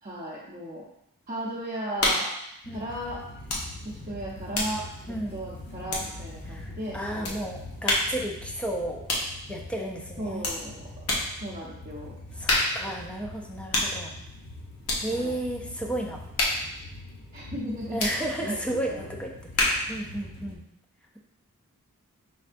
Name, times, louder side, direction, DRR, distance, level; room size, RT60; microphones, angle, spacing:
voice 1, 0.0-0.8 1.3-2.3 2.7-3.2 3.8-7.3 10.2-10.9 11.4-12.1 15.1-15.4 17.3-19.1, right 1 dB, 30° right, -6 dB, 0.7 m, -36 dB
sound 1, 2.0-2.4 3.4-3.7 4.0-6.4 7.2-7.4 7.8-8.2 9.1-9.4 10.4-10.6 11.1-11.3 12.4-12.9 13.7-14.0 14.8-15.1 16.3-16.7 18.0-18.2 19.5-19.9, left 1 dB, 85° left, 1.0 m, -27 dB
sound 2, 2.6-20.5, left 1 dB, 50° left, 0.7 m, -43 dB
voice 2, 5.1-5.4 6.5-9.1 9.5-10.4 12.4-14.1 15.0-16.2 17.9-20.6, right 1 dB, 5° left, 0 dB, 0.5 m, -33 dB
5.2 x 3.3 x 2.5 m, 0.80 s
head